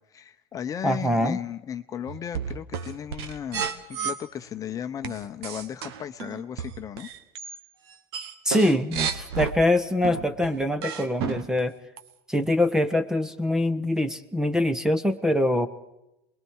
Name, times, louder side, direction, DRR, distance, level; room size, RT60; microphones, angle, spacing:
voice 1, 0.1-7.1, left 9 dB, 25° left, 8 dB, 1.0 m, -35 dB
voice 2, 0.8-1.4 8.4-11.8 12.3-15.7, left 1 dB, 5° right, 12 dB, 1.1 m, -24 dB
sound 1, 2.1-4.2 5.0-7.6 7.9-9.5 10.0-11.6 12.0-12.1, right 7 dB, 80° right, 2.0 m, -32 dB
29.0 x 21.5 x 4.8 m, 0.90 s
supercardioid pair, 135°, 13 cm